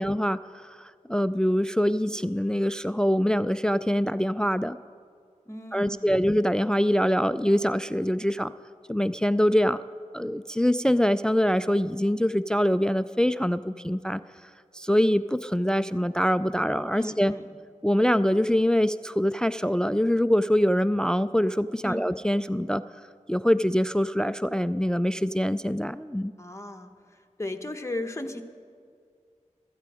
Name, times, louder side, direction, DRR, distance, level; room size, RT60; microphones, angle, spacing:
voice 1, 0.0-4.8 5.7-8.5 8.9-9.8 10.1-14.2 14.7-17.3 17.8-22.8 23.3-26.3, equal, 5° left, 14 dB, 0.3 m, -24 dB
voice 2, 5.5-6.2 16.9-17.4 21.8-22.1 26.4-26.9 27.4-28.4, left 1 dB, 20° left, 5 dB, 1.1 m, -35 dB
16.0 x 13.5 x 4.9 m, 2.2 s
cardioid pair, 45°, 13 cm